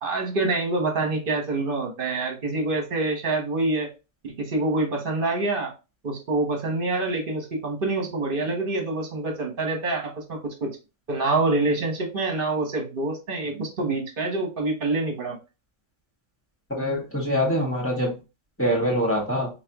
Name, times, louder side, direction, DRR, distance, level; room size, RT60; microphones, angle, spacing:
voice 1, 0.0-3.9 4.2-5.7 6.0-10.7 11.1-15.4, right 2 dB, 45° right, 2 dB, 1.3 m, -26 dB
voice 2, 16.7-18.1 18.6-19.5, equal, 10° left, -2 dB, 1.7 m, -24 dB
5.7 x 2.4 x 2.9 m, 0.29 s
omnidirectional pair, 1.3 m